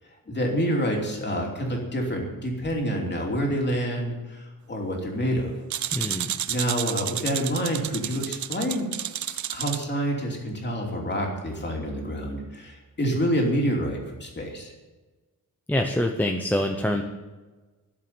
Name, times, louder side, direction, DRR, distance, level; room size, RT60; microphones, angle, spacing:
voice 1, 0.3-5.5 6.5-8.9 9.5-14.7, equal, 30° left, 0 dB, 2.9 m, -27 dB
sound 1, 5.7-9.8, right 11 dB, 60° right, 0.5 m, -31 dB
voice 2, 5.9-6.3 15.7-17.0, left 1 dB, 5° left, 3 dB, 0.8 m, -25 dB
12.5 x 7.5 x 9.4 m, 1.2 s
wide cardioid pair, 170°, 34 cm